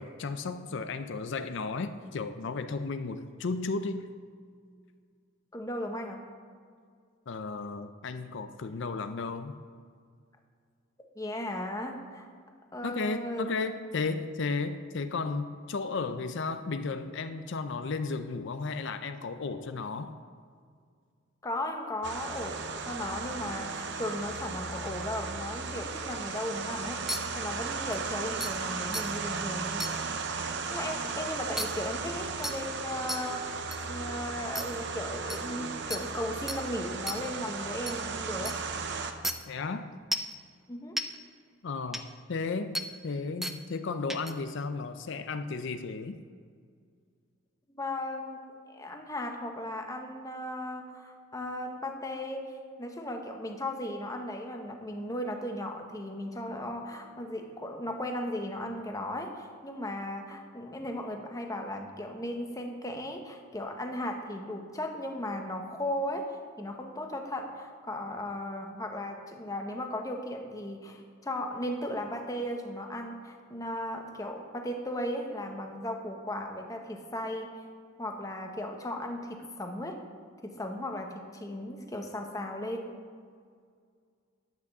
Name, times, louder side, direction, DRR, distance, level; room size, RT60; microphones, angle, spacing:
voice 1, 0.0-4.1 7.3-9.6 12.8-20.2 39.5-39.9 41.6-42.0 42.3-46.2, left 4 dB, 65° left, 9 dB, 0.5 m, -34 dB
voice 2, 5.5-6.2 11.2-12.3 12.7-13.5 21.4-27.0 27.3-29.8 30.7-38.6 40.7-41.0 47.7-48.4 48.7-52.5 52.8-77.5 78.0-79.9 80.4-83.0, left 1 dB, 15° left, 3 dB, 1.1 m, -36 dB
sound 1, 22.0-39.1, right 4 dB, 60° right, 0.7 m, -36 dB
sound 2, 27.1-27.2 27.9-28.0 28.4-28.5 28.9-29.0 29.8-29.9 31.6-31.7 32.4-32.6 33.1-33.2 33.7-33.8 34.6-34.7 35.3-35.4 35.9-36.0 36.5-36.6 37.1-37.2 37.9-38.0 38.5-38.6 39.2-39.3 40.1-40.3 41.0-41.1 41.9-42.0 42.7-42.9 43.4-43.6 44.1-44.3, equal, ahead, 0.4 m, -32 dB
10.5 x 6.0 x 7.1 m, 2.1 s
head